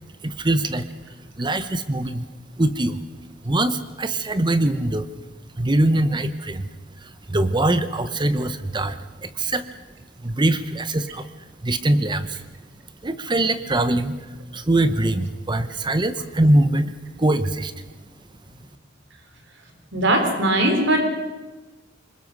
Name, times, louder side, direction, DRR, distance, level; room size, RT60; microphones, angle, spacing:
voice 1, 0.2-0.9 1.4-2.2 2.6-3.0 3.4-5.1 5.6-6.7 7.0-9.7 10.2-11.3 11.6-12.4 13.0-14.2 14.5-17.7, right 1 dB, 25° right, 12 dB, 0.9 m, -22 dB
voice 2, 19.9-21.0, right 1 dB, 65° right, 4 dB, 3.9 m, -19 dB
25.0 x 21.5 x 6.1 m, 1.2 s
head